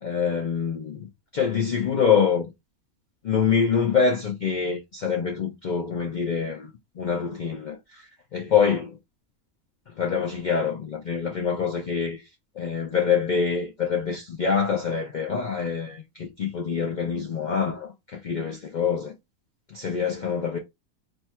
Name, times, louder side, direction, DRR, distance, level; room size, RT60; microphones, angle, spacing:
voice 1, 0.0-1.1 1.3-2.5 3.2-6.7 7.0-9.0 9.9-12.2 12.6-19.1 19.7-20.6, left 6 dB, 85° left, 0.4 m, -25 dB
2.7 x 2.3 x 4.1 m
omnidirectional pair, 1.5 m